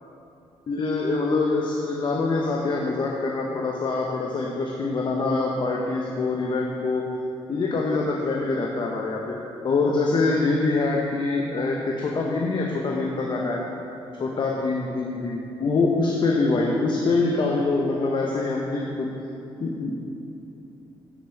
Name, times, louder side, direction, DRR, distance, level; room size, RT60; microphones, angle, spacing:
voice 1, 0.7-7.0 7.5-9.4 9.6-13.6 14.2-19.1 19.6-20.0, left 3 dB, 50° left, -1 dB, 0.8 m, -24 dB
7.2 x 5.4 x 4.5 m, 2.8 s
supercardioid pair, 60°, 10 cm